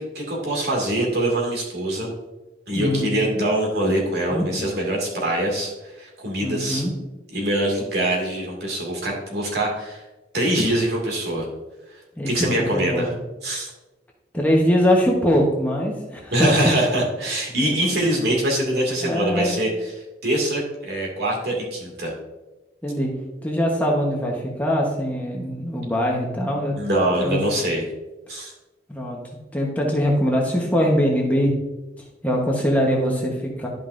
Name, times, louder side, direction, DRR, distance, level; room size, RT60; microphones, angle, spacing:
voice 1, 0.0-2.1 2.7-6.8 7.3-10.0 10.3-11.5 12.3-13.1 13.4-13.7 16.3-19.7 20.2-22.1 26.8-27.9 28.3-28.5, right 1 dB, 65° right, -2 dB, 2.2 m, -23 dB
voice 2, 2.7-3.1 4.3-4.5 6.4-6.9 12.2-12.3 12.6-13.1 14.3-16.7 19.0-19.6 22.8-23.1 23.4-26.8 27.2-27.4 28.9-29.2 29.5-31.5 32.2-33.7, equal, 10° left, -2 dB, 1.1 m, -22 dB
11.5 x 5.3 x 2.6 m, 1.1 s
head